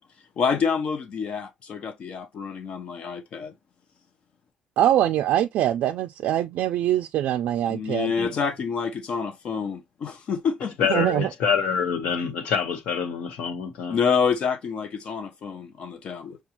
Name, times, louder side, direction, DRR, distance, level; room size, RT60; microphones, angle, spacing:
voice 1, 0.4-3.5 7.7-10.9 13.9-16.4, left 6 dB, 45° left, 0.6 m, -27 dB
voice 2, 4.8-8.1 10.9-11.3, right 12 dB, 70° right, 0.3 m, -23 dB
voice 3, 10.8-14.0, left 6 dB, 85° left, 1.1 m, -26 dB
6.0 x 2.3 x 2.8 m
cardioid pair, 165°, 3 cm